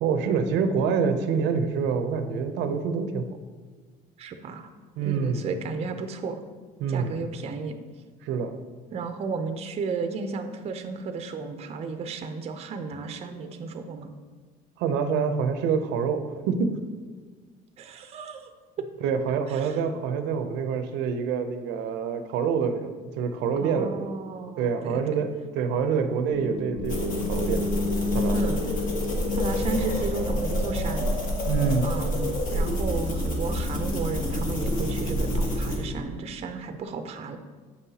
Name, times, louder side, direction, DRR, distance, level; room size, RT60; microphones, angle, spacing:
voice 1, 0.0-3.3 5.0-5.5 6.8-7.2 8.2-8.6 14.8-16.8 19.0-24.2 24.6-27.6 28.1-28.4 31.5-31.9, right 6 dB, 80° right, 8 dB, 0.6 m, -26 dB
voice 2, 4.2-4.7 5.0-6.4 6.9-7.7 8.9-14.1 17.8-18.5 19.5-19.8 23.6-25.2 28.3-28.6 29.4-31.1 31.8-37.4, right 4 dB, 35° right, 7 dB, 0.5 m, -33 dB
sound 1, 26.3-35.9, left 3 dB, 90° left, 1.4 m, -33 dB
sound 2, 26.8-35.8, equal, 50° left, 1.4 m, -28 dB
7.6 x 5.6 x 2.8 m, 1.5 s
cardioid pair, 120°, 18 cm